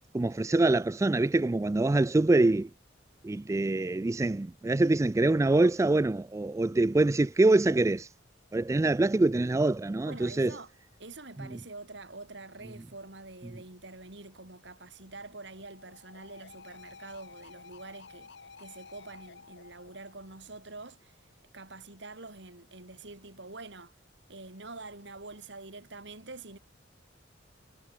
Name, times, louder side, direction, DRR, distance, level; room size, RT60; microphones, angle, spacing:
voice 1, 0.1-2.7 3.2-8.1 8.5-10.5, right 2 dB, 15° right, 0.3 m, -25 dB
voice 2, 10.1-10.7 11.0-18.3 18.6-21.2 21.5-23.9 24.3-26.6, right 3 dB, 65° right, 4.0 m, -46 dB
sound 1, 10.7-11.1 14.7-21.1 24.7-25.5, left 4 dB, 65° left, 1.4 m, -54 dB
head